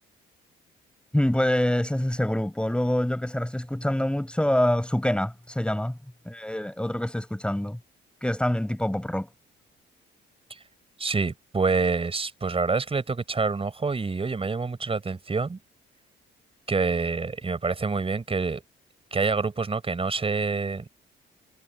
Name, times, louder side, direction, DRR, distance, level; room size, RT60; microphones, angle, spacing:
voice 1, 1.1-6.0 6.3-7.8 8.2-9.3, left 1 dB, 5° left, 5.3 m, -25 dB
voice 2, 11.0-15.6 16.7-18.6 19.1-20.9, right 4 dB, 30° right, 4.4 m, -27 dB
cardioid pair, 90°, 20 cm